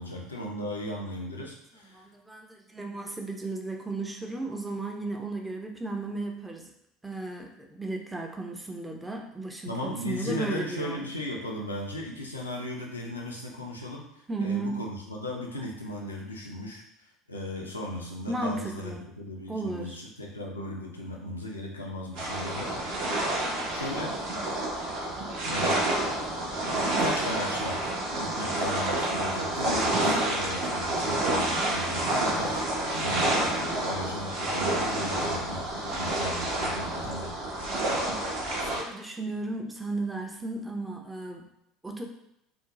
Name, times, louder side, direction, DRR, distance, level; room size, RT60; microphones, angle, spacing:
voice 1, 0.0-2.0 9.7-22.9 23.4-24.2 25.5-25.8 27.0-27.8 28.1-37.4, left 1 dB, 85° left, -2 dB, 0.4 m, -37 dB
voice 2, 1.9-6.7 7.0-11.0 14.3-14.8 18.3-19.1 19.5-20.0 28.2-28.4 29.7-29.9 37.7-41.4 41.8-42.0, right 2 dB, 10° right, 1 dB, 0.4 m, -35 dB
sound 1, 22.1-38.8, right 1 dB, 55° right, 0.6 m, -29 dB
2.5 x 2.1 x 2.9 m, 0.80 s
figure-of-eight pair, 65°, 0 cm